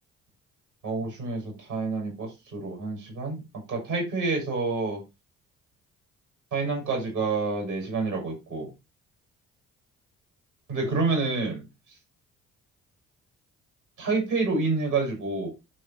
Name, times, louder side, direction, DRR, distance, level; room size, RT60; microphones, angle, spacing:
voice 1, 0.8-3.4 3.7-5.0 6.5-8.7 10.7-11.6 14.0-15.5, right 3 dB, 85° right, 6.2 m, -28 dB
11.5 x 3.9 x 4.3 m
hypercardioid pair, 45°, 39 cm